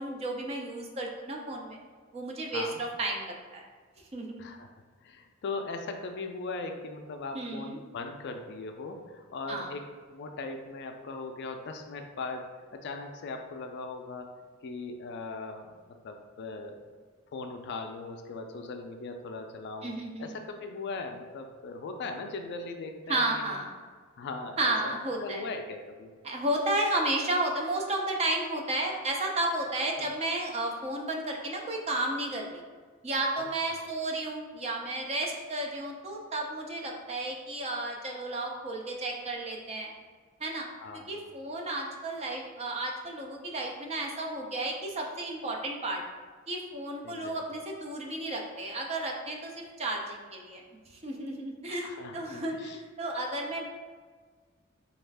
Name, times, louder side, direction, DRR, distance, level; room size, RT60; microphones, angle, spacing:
voice 1, 0.0-1.8 2.1-3.6 4.1-4.4 7.3-7.8 9.5-9.7 19.8-20.3 23.1-23.7 24.6-25.5 26.2-32.6 33.0-39.9 40.4-40.7 41.1-46.0 46.5-50.6 50.9-53.6, right 1 dB, 30° right, 0 dB, 0.5 m, -32 dB
voice 2, 5.0-12.5 12.7-14.3 14.6-15.7 16.0-16.8 17.3-19.9 20.2-23.6 24.2-24.9 25.2-26.1 30.0-30.1 40.8-41.2 47.0-47.4 51.8-52.8, left 3 dB, 55° left, 5 dB, 0.3 m, -39 dB
4.2 x 2.3 x 3.4 m, 1.5 s
head